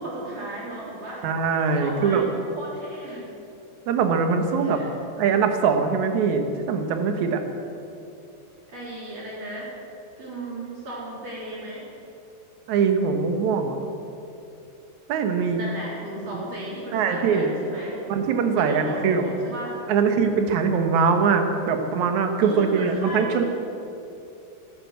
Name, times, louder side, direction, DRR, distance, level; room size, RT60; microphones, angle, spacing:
voice 1, 0.0-1.3 1.7-3.3 4.6-4.9 8.7-9.7 10.2-11.9 15.5-18.0 18.6-19.8 22.4-23.5, right 1 dB, 40° right, -5 dB, 4.5 m, -35 dB
voice 2, 1.2-2.2 3.9-4.8 5.2-7.4 12.7-13.8 15.1-15.6 16.3-16.4 16.9-17.5 18.1-19.3 19.9-23.4, right 5 dB, 65° right, 6 dB, 1.9 m, -22 dB
13.5 x 12.0 x 7.9 m, 2.7 s
omnidirectional pair, 4.8 m